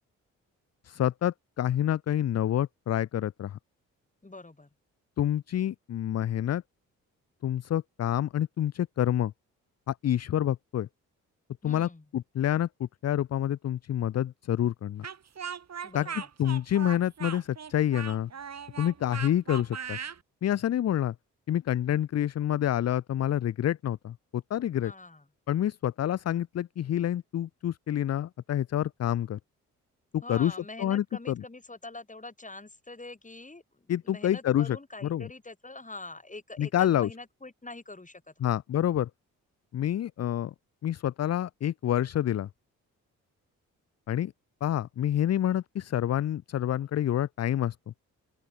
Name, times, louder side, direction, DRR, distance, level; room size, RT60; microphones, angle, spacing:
voice 1, 0.8-3.6 5.2-6.6 7.4-9.3 9.9-10.9 11.6-15.1 15.9-16.1 16.4-18.3 18.8-20.0 20.4-21.1 21.5-24.9 25.5-29.4 30.1-31.4 33.9-34.8 35.0-35.3 36.6-37.1 38.4-39.1 39.7-40.5 40.8-42.5 44.1-44.3 44.6-47.8, left 11 dB, 45° left, 0.6 m, -28 dB
voice 2, 4.2-4.7 11.6-12.1 15.8-16.3 24.8-25.2 30.2-38.3, left 2 dB, 20° left, 3.8 m, -44 dB
Speech, 15.0-20.2, right 7 dB, 45° right, 1.6 m, -39 dB
open air
hypercardioid pair, 45°, 38 cm